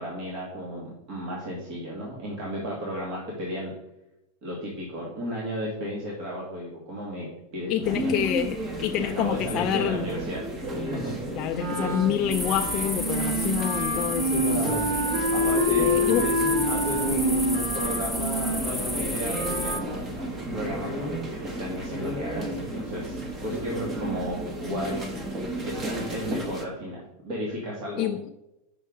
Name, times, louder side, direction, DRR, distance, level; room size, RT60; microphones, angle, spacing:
voice 1, 0.0-3.7 4.4-8.2 9.0-10.4 10.8-11.2 14.2-14.9 15.3-16.1 16.7-25.0 25.6-27.0 27.2-28.1, equal, 50° right, 1.9 m, -33 dB
voice 2, 7.7-10.1 11.4-14.8 15.8-16.3 28.0-28.2, left 11 dB, 40° left, 0.3 m, -27 dB
sound 1, 7.8-26.7, right 1 dB, 25° right, 1.1 m, -33 dB
Wind instrument woodwind instrument, 11.5-19.9, equal, 75° right, 1.9 m, -27 dB
sound 2, 12.3-19.8, left 1 dB, ahead, 0.6 m, -32 dB
8.0 x 5.6 x 3.7 m
supercardioid pair, 135°, 0 cm